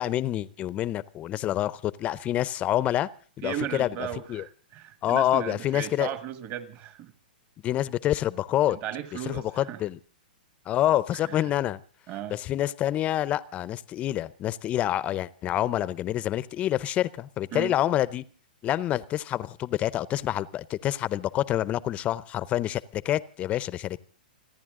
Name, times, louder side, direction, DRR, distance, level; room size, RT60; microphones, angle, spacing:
voice 1, 0.0-3.1 3.4-3.9 4.3-4.4 5.0-6.1 7.6-8.8 9.2-10.0 10.7-11.8 12.3-18.2 18.6-24.0, left 13 dB, 25° left, 18 dB, 0.7 m, -27 dB
voice 2, 3.4-7.1 8.7-9.8 11.2-11.4 12.1-12.4 17.5-17.8, right 10 dB, 40° right, 12 dB, 1.7 m, -36 dB
30.0 x 10.5 x 3.8 m, 0.40 s
hypercardioid pair, 140°, 5 cm